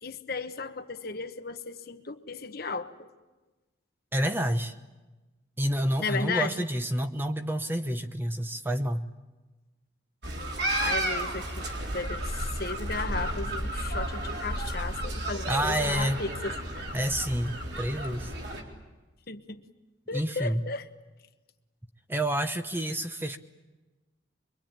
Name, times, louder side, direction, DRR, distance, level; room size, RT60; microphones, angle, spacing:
voice 1, 0.0-3.1 6.0-6.6 10.8-11.7 11.9-16.5 19.3-19.6 20.1-20.8, left 4 dB, 55° left, 8 dB, 1.2 m, -35 dB
voice 2, 4.1-4.7 5.6-9.1 15.5-16.2 16.9-18.3 20.1-20.6 22.1-23.4, right 1 dB, 10° right, 7 dB, 0.9 m, -29 dB
sound 1, 10.2-18.6, right 1 dB, 60° right, 4.0 m, -32 dB
24.5 x 24.0 x 8.9 m, 1.2 s
head